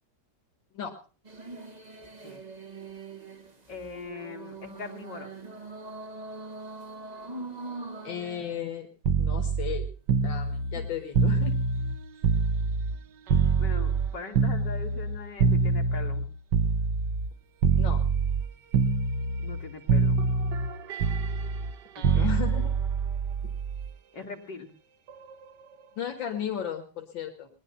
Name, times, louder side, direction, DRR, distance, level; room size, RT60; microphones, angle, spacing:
sound 1, 1.2-8.6, right 3 dB, 25° right, 1.4 m, -42 dB
voice 1, 3.7-5.3 13.6-16.3 19.4-20.2 22.0-22.3 24.1-24.7, left 4 dB, 65° left, 3 dB, 3.0 m, -41 dB
voice 2, 8.0-8.9 9.2-9.9 10.2-11.5 17.8-18.0 22.1-22.7 26.0-27.5, left 8 dB, 85° left, 4 dB, 2.2 m, -34 dB
sound 2, 9.0-13.0 13.3-17.3 17.6-18.5 18.7-19.6 19.9-23.9 25.1-25.3, right 5 dB, 70° right, 1.5 m, -25 dB
20.0 x 11.0 x 5.5 m, 0.39 s
omnidirectional pair, 2.0 m